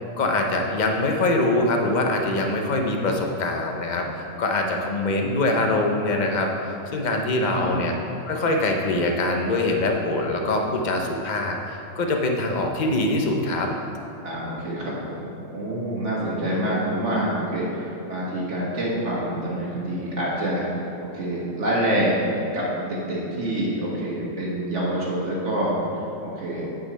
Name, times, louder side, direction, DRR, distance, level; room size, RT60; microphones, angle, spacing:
voice 1, 0.2-8.0 8.3-13.7, left 2 dB, 40° left, 2 dB, 0.8 m, -23 dB
voice 2, 7.4-7.8 14.2-20.7 21.1-26.6, right 1 dB, 65° right, -6 dB, 1.7 m, -26 dB
8.5 x 6.4 x 4.1 m, 2.9 s
omnidirectional pair, 1.3 m